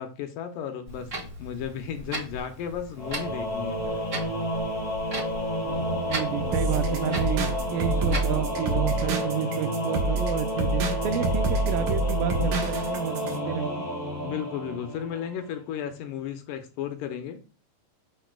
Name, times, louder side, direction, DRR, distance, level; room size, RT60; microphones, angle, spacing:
voice 1, 0.0-4.0 14.2-17.4, left 8 dB, 80° left, 2.3 m, -34 dB
Clock, 0.9-8.4, right 1 dB, 50° right, 0.8 m, -38 dB
Singing / Musical instrument, 3.0-15.4, equal, 50° left, 2.5 m, -30 dB
voice 2, 6.1-13.8, right 11 dB, 85° right, 2.3 m, -31 dB
sound 1, 6.5-13.4, right 2 dB, 70° right, 2.7 m, -28 dB
6.8 x 6.3 x 2.3 m
omnidirectional pair, 4.0 m